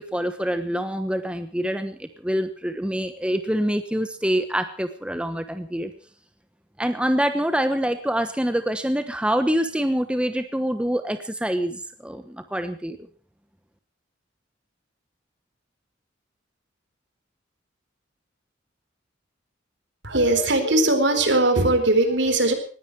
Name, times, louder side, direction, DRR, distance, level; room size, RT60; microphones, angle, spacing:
voice 1, 0.0-5.9 6.8-13.0, equal, 5° right, 8 dB, 1.1 m, -25 dB
voice 2, 20.0-22.5, right 2 dB, 65° right, 7 dB, 4.1 m, -20 dB
20.0 x 15.5 x 4.7 m, 0.42 s
head